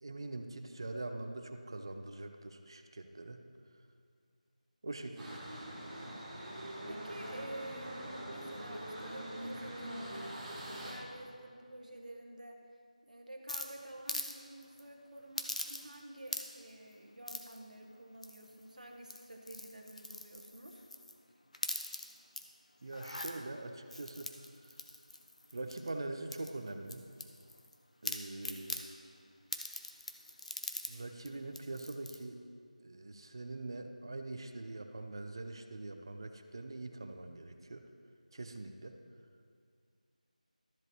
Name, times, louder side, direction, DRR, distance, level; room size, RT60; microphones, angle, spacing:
voice 1, 0.0-3.4 4.8-5.9 22.8-24.8 25.5-27.0 28.0-28.8 30.9-32.4 32.8-37.8 38.3-39.0, right 2 dB, 35° right, 6 dB, 0.5 m, -43 dB
voice 2, 4.9-5.3 6.8-12.6 13.0-20.8 28.4-28.9, right 1 dB, 70° right, 2 dB, 1.3 m, -50 dB
sound 1, 5.2-10.9, right 1 dB, 5° right, 1.0 m, -43 dB
sound 2, 13.5-14.3 14.6-14.8 15.4-16.0 16.3-16.7 17.3-17.6 18.2-18.6 19.0-21.2 21.5-22.4 22.9-23.3 23.9-25.9 26.3-27.7 28.0-28.8 29.5-30.9 31.3-31.4 31.5-32.2, left 2 dB, 55° left, 0.8 m, -42 dB
13.0 x 7.5 x 3.1 m, 2.2 s
figure-of-eight pair, 175°, 4 cm